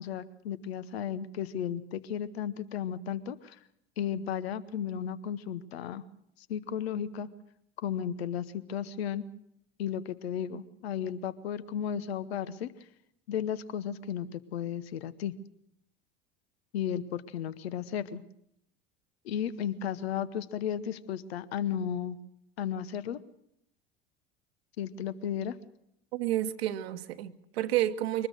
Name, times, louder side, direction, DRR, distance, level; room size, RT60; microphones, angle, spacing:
voice 1, 0.0-3.6 4.0-6.0 6.5-7.3 7.8-9.2 9.8-12.7 13.3-15.3 16.7-18.2 19.2-22.2 22.6-23.2 24.8-25.6, left 9 dB, 75° left, 1.0 m, -34 dB
voice 2, 26.1-28.3, right 13 dB, 75° right, 1.2 m, -30 dB
23.0 x 20.0 x 6.6 m
hypercardioid pair, 70°, 31 cm